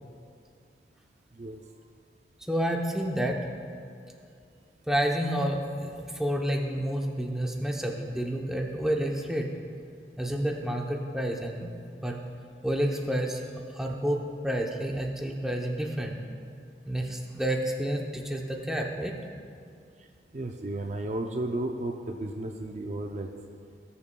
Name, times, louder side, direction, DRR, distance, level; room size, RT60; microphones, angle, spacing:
voice 1, 2.5-3.5 4.9-9.5 10.2-11.7 12.0-12.2 12.6-13.4 13.7-16.2 16.9-19.1, equal, 5° right, 0 dB, 0.7 m, -29 dB
voice 2, 20.3-23.3, right 1 dB, 40° right, 4 dB, 0.4 m, -33 dB
19.5 x 7.0 x 2.2 m, 2.4 s
head